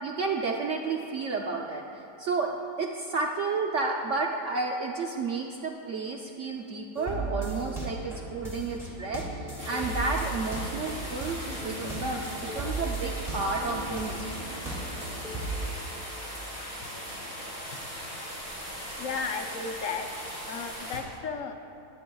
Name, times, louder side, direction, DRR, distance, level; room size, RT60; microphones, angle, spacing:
voice 1, 0.0-14.3, right 3 dB, 60° right, 0 dB, 0.8 m, -31 dB
sound 1, 7.0-15.7, right 2 dB, ahead, 1.8 m, -36 dB
sound 2, 9.6-21.0, equal, 25° left, 2.9 m, -39 dB
voice 2, 19.0-20.1 20.5-21.5, left 5 dB, 65° left, 5 dB, 0.9 m, -34 dB
20.0 x 9.3 x 2.3 m, 2.8 s
omnidirectional pair, 1.8 m